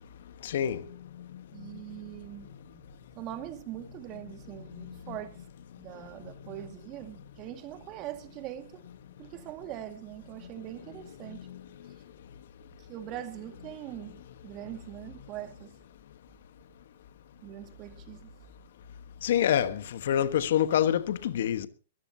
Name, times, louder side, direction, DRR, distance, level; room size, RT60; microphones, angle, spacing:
voice 1, 0.4-0.9 1.2-1.3 4.7-5.2 11.3-11.6 19.2-21.7, left 10 dB, 60° left, 1.3 m, -27 dB
voice 2, 1.5-2.8 3.2-5.4 5.8-8.8 9.2-11.5 12.8-15.8 17.4-18.3, right 12 dB, 35° right, 2.1 m, -42 dB
22.0 x 14.0 x 2.9 m
hypercardioid pair, 130°, 0 cm